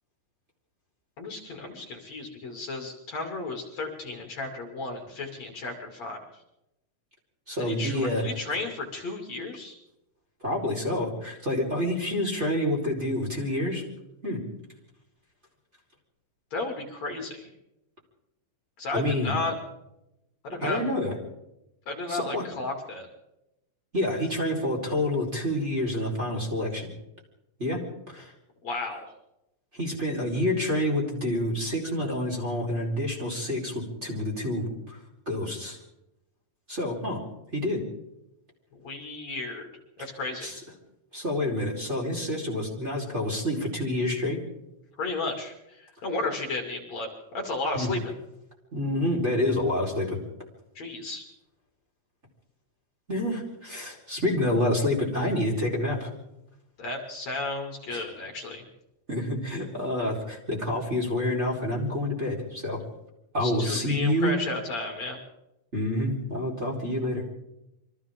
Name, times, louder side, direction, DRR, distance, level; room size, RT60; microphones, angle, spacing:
voice 1, 1.2-6.2 7.6-9.8 16.5-17.4 18.8-19.6 20.4-20.8 21.9-23.1 28.6-29.1 38.8-39.7 40.0-40.5 45.0-47.1 47.3-48.1 50.8-51.2 56.8-58.6 63.4-65.2, left 2 dB, 50° left, 2 dB, 3.8 m, -33 dB
voice 2, 7.5-8.2 10.4-13.8 14.2-14.4 18.9-19.4 20.6-21.2 22.1-22.4 23.9-26.9 27.6-28.3 29.7-35.0 35.3-35.8 36.7-37.2 37.5-37.8 40.0-40.1 40.4-40.6 41.1-44.4 47.7-47.9 48.7-50.2 53.1-56.1 57.9-58.0 59.1-62.8 63.3-64.3 65.7-67.2, left 1 dB, 15° right, -3 dB, 4.6 m, -28 dB
28.5 x 24.5 x 3.8 m, 0.89 s
omnidirectional pair, 4.3 m